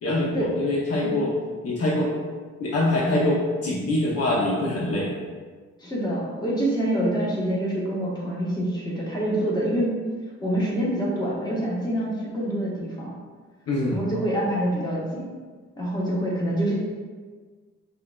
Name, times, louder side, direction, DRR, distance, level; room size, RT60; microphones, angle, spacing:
voice 1, 0.0-1.3 1.6-2.1 2.6-5.1 13.7-14.0, left 1 dB, 50° left, -4 dB, 0.8 m, -24 dB
voice 2, 5.8-9.9 10.4-13.1 13.9-15.3 15.8-16.8, right 1 dB, 15° left, -5 dB, 1.2 m, -26 dB
5.5 x 2.6 x 2.3 m, 1.5 s
cardioid pair, 90°, 30 cm